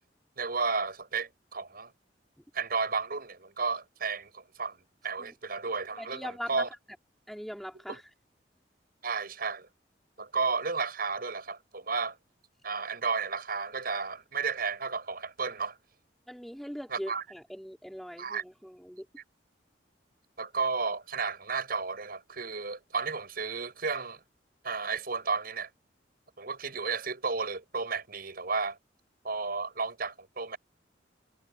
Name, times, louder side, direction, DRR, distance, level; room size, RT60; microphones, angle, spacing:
voice 1, 0.4-1.9 2.5-6.7 7.9-8.0 9.0-9.7 10.2-12.2 12.6-15.8 16.9-17.2 18.2-18.4 20.4-24.2 24.6-25.7 26.4-28.8 29.2-30.6, right 4 dB, 55° right, 7.5 m, -33 dB
voice 2, 6.0-6.6 7.3-8.0 16.3-19.1, equal, ahead, 5.4 m, -41 dB
head